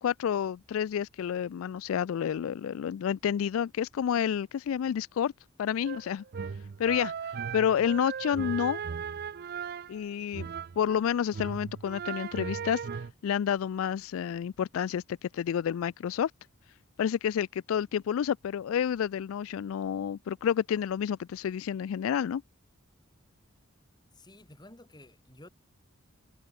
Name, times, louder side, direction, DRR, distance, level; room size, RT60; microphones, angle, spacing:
voice 1, 0.0-5.3 5.6-6.2 6.8-7.1 7.5-8.8 9.9-10.5 10.8-12.9 13.2-16.3 17.0-22.4, left 8 dB, 75° left, 0.3 m, -29 dB
sound 1, 5.8-11.0 11.3-13.1, right 6 dB, 50° right, 0.4 m, -37 dB
voice 2, 24.1-25.5, left 1 dB, 20° left, 2.6 m, -52 dB
head